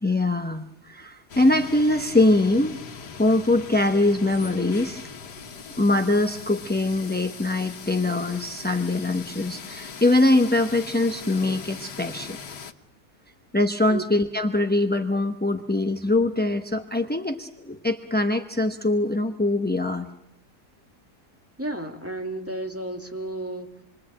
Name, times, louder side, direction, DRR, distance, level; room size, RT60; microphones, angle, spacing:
voice 1, 0.0-2.7 3.2-5.0 5.8-12.4 13.5-20.1, left 2 dB, 10° left, 6 dB, 0.6 m, -23 dB
sound 1, 1.3-12.7, left 6 dB, 85° left, 2.0 m, -40 dB
voice 2, 21.6-23.7, right 1 dB, 10° right, 3 dB, 2.5 m, -32 dB
28.0 x 23.0 x 8.8 m, 0.77 s
omnidirectional pair, 1.7 m